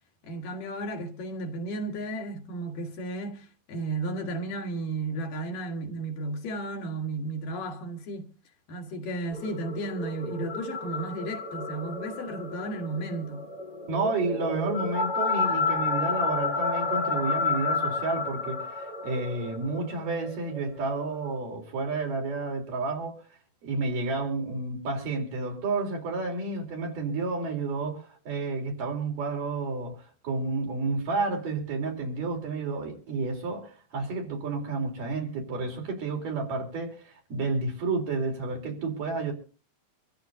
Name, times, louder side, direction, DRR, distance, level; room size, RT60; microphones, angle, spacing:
voice 1, 0.2-8.3 8.7-13.5, right 2 dB, 90° left, 3.4 m, -34 dB
sound 1, 9.3-21.4, left 4 dB, 35° left, 5.6 m, -31 dB
voice 2, 13.9-23.2 23.6-39.3, right 3 dB, 85° right, 5.4 m, -31 dB
25.5 x 14.0 x 2.8 m
omnidirectional pair, 3.7 m